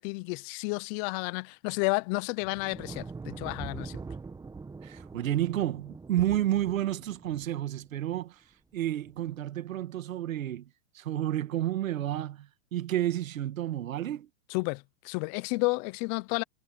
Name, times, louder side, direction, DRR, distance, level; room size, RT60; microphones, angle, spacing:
voice 1, 0.0-4.0 14.5-16.4, left 28 dB, 30° left, 0.4 m, -31 dB
sound 1, 2.4-7.9 9.1-9.4, right 4 dB, 10° right, 1.6 m, -43 dB
voice 2, 4.8-8.4 8.7-14.3, right 12 dB, 85° right, 2.1 m, -31 dB
hypercardioid pair, 135°, 39 cm